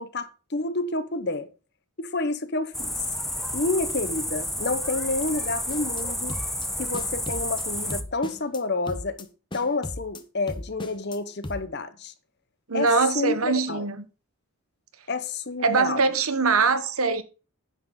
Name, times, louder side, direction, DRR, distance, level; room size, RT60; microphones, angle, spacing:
voice 1, 0.0-1.5 2.0-3.0 3.5-6.3 6.8-12.1 12.7-12.9 13.1-13.9 15.1-16.1, left 3 dB, 50° left, 1.0 m, -29 dB
sound 1, 2.7-8.0, left 1 dB, ahead, 0.5 m, -31 dB
sound 2, 5.7-6.0 6.3-6.7 6.9-7.6 7.9-8.6 8.9-9.2 9.5-10.2 10.5-11.2 11.4-11.6, left 1 dB, 20° left, 0.9 m, -36 dB
voice 2, 12.7-14.0 15.6-17.2, right 4 dB, 75° right, 1.2 m, -22 dB
9.7 x 8.0 x 3.8 m
head